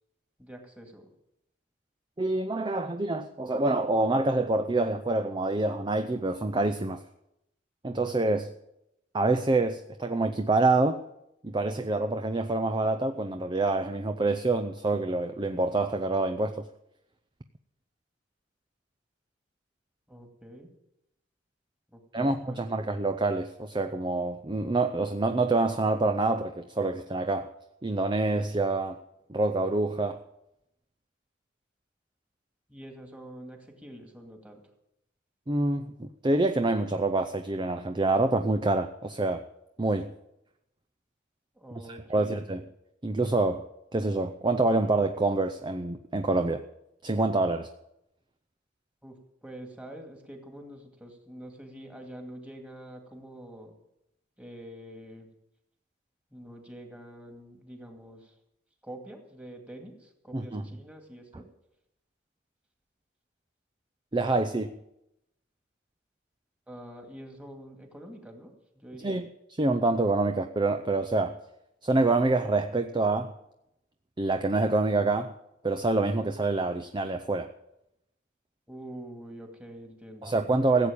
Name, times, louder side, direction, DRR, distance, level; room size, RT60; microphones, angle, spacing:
voice 1, 0.4-1.1 20.1-20.7 21.9-22.8 32.7-34.6 41.5-42.4 49.0-53.7 54.4-55.3 56.3-58.3 58.8-61.5 66.7-69.2 78.7-80.3, right 1 dB, 5° right, 3 dB, 2.3 m, -46 dB
voice 2, 2.2-7.0 7.8-8.5 9.1-11.0 11.4-16.7 22.1-27.5 27.8-29.0 29.3-30.2 35.5-39.4 39.8-40.1 41.9-42.6 43.0-43.7 43.9-46.6 47.0-47.7 60.3-60.6 64.1-64.7 69.0-69.3 69.6-71.4 71.8-73.3 74.2-75.4 75.6-77.5 80.2-80.9, right 2 dB, 25° right, 7 dB, 0.6 m, -26 dB
16.0 x 8.3 x 8.6 m, 0.84 s
head